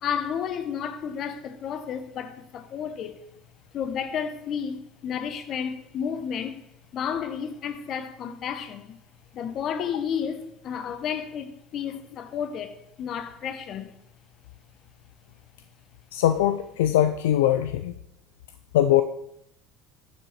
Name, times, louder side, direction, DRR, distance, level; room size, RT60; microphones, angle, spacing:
voice 1, 0.0-3.2 3.7-6.6 6.9-9.0 9.3-13.9, left 7 dB, 50° left, 1.0 m, -32 dB
voice 2, 16.1-17.9 18.7-19.0, left 12 dB, 80° left, 0.4 m, -21 dB
10.5 x 7.4 x 4.3 m
hypercardioid pair, 70°, 0 cm